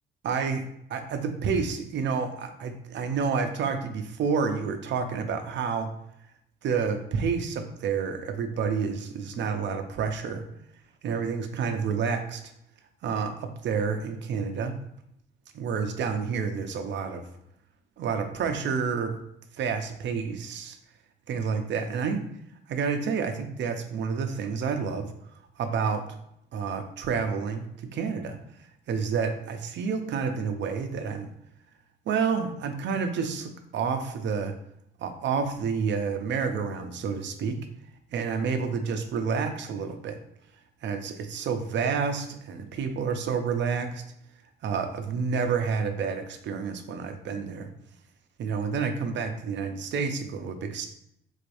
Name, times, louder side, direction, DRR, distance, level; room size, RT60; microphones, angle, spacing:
voice 1, 0.2-0.6 0.9-5.9 6.6-10.4 11.0-12.4 13.0-14.7 15.5-17.3 18.0-19.1 19.5-20.8 21.3-22.2 22.7-25.1 25.6-26.0 26.5-27.7 27.9-28.4 28.9-31.3 32.1-34.5 35.0-37.6 38.1-40.2 40.8-44.0 44.6-47.7 48.4-50.9, right 5 dB, 65° right, 7 dB, 0.6 m, -29 dB
3.9 x 3.2 x 2.6 m, 0.75 s
cardioid pair, 90°, 20 cm